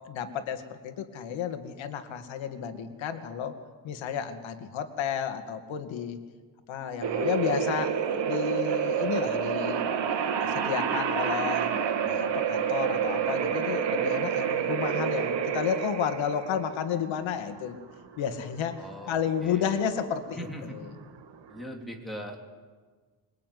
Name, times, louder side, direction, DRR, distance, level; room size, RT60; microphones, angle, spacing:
voice 1, 0.1-3.5 3.8-6.2 6.7-8.0 8.3-9.8 10.4-11.7 12.1-17.8 18.2-20.3, left 8 dB, 75° left, 7 dB, 2.3 m, -31 dB
sound 1, 7.0-21.6, right 8 dB, 65° right, 2.4 m, -29 dB
voice 2, 18.8-19.9 20.3-20.8 21.5-22.4, equal, ahead, 0 dB, 3.3 m, -41 dB
25.5 x 22.0 x 9.6 m, 1.5 s
cardioid pair, 180°, 46 cm